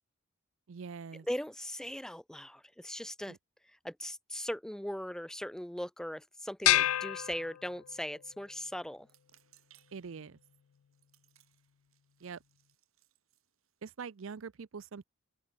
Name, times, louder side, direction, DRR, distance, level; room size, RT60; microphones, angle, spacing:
voice 1, 0.7-1.3 3.3-3.4 9.9-10.4 12.2-12.4 13.8-15.0, right 5 dB, 65° right, 0.5 m, -44 dB
voice 2, 1.3-3.4 3.8-9.1, equal, 5° left, 0.6 m, -39 dB
sound 1, 6.6-8.1, left 14 dB, 85° left, 0.4 m, -29 dB
sound 2, 9.0-14.3, right 13 dB, 85° right, 5.1 m, -69 dB
open air
head